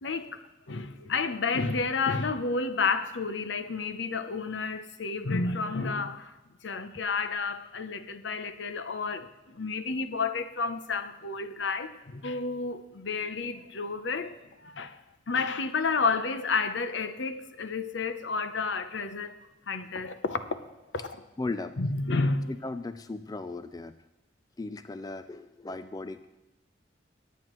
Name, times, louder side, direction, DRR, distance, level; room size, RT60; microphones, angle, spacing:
voice 1, 0.0-0.4 0.7-6.3 6.6-14.3 14.6-15.0 15.3-19.4 19.7-20.7 21.0-21.1 21.8-22.5, left 4 dB, 70° left, 0.7 m, -31 dB
voice 2, 21.4-21.8 22.5-24.0 24.6-26.3, left 2 dB, 20° left, 0.3 m, -36 dB
23.0 x 9.1 x 3.1 m
head